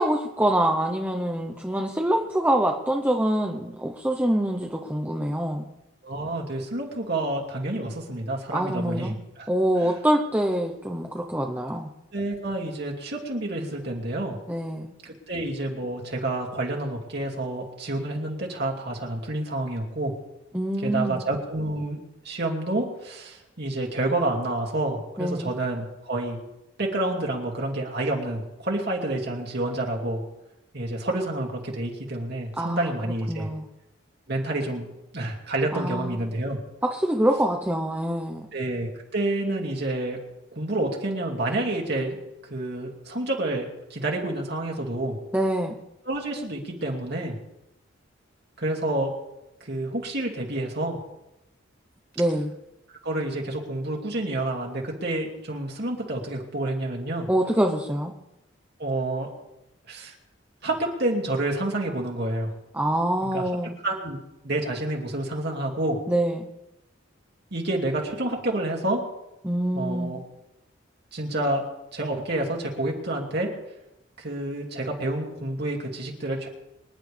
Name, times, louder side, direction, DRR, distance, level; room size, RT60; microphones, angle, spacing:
voice 1, 0.0-5.7 8.5-9.1 9.5-11.9 14.5-14.9 20.5-21.2 25.2-25.5 32.6-32.9 33.3-33.7 35.7-36.2 36.8-38.5 45.3-45.7 52.2-52.5 57.3-58.1 62.7-63.7 66.1-66.5 69.4-70.1, right 1 dB, 10° right, 1 dB, 0.9 m, -25 dB
voice 2, 6.0-9.5 9.8-9.9 12.1-14.4 15.0-20.1 20.8-22.0 22.2-26.4 26.8-30.2 30.7-33.5 34.3-34.9 35.1-36.6 38.5-40.2 40.5-42.2 42.5-45.2 46.1-47.4 48.6-49.1 49.6-51.0 53.0-57.3 58.8-59.3 59.9-60.1 60.6-62.5 63.3-63.4 63.8-64.2 64.4-66.0 67.5-69.0 69.7-70.2 71.1-71.6 71.9-73.5 74.2-76.5, right 1 dB, 55° right, -1 dB, 2.6 m, -29 dB
25.5 x 10.5 x 3.5 m, 0.93 s
head